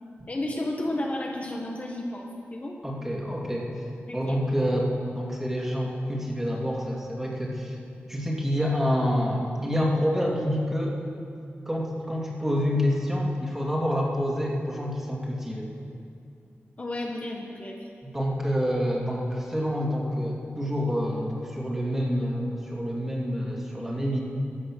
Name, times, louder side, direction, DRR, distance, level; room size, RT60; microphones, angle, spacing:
voice 1, 0.3-2.8 4.1-4.4 16.8-17.7, left 1 dB, 35° left, -1 dB, 1.3 m, -32 dB
voice 2, 2.8-3.7 4.1-7.8 8.1-11.0 11.7-15.7 18.0-24.2, equal, 10° right, -3 dB, 2.5 m, -27 dB
14.5 x 12.0 x 6.3 m, 2.5 s
wide cardioid pair, 125°, 4 cm